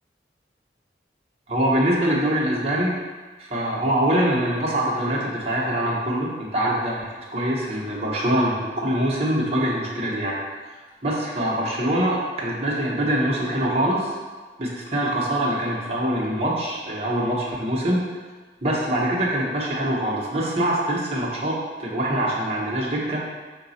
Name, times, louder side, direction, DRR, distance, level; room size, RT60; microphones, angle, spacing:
voice 1, 1.5-3.0 3.4-10.4 11.0-14.2 14.6-18.0 18.6-23.2, right 1 dB, 35° right, -5 dB, 0.8 m, -24 dB
4.7 x 2.3 x 4.0 m, 1.4 s
head